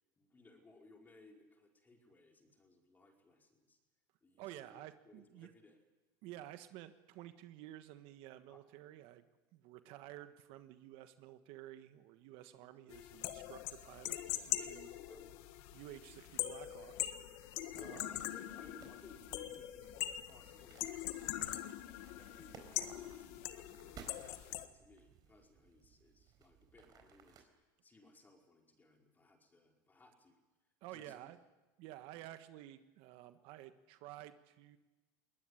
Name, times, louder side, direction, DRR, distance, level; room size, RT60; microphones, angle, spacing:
voice 1, 0.2-3.8 4.2-5.8 8.5-8.6 12.5-12.7 15.1-15.3 17.7-21.7 22.1-27.5 27.8-30.4 30.9-31.3, left 2 dB, 20° left, 1 dB, 4.9 m, -62 dB
voice 2, 4.4-5.5 6.2-9.2 9.5-14.9 15.7-17.1 17.7-18.1 30.8-31.4 31.8-34.8, right 14 dB, 65° right, 10 dB, 1.4 m, -52 dB
sound 1, 12.9-24.7, left 14 dB, 70° left, 1.7 m, -42 dB
sound 2, 18.1-27.4, right 7 dB, 40° right, 4.4 m, -60 dB
21.5 x 19.5 x 10.0 m, 1.2 s
supercardioid pair, 120°, 10 cm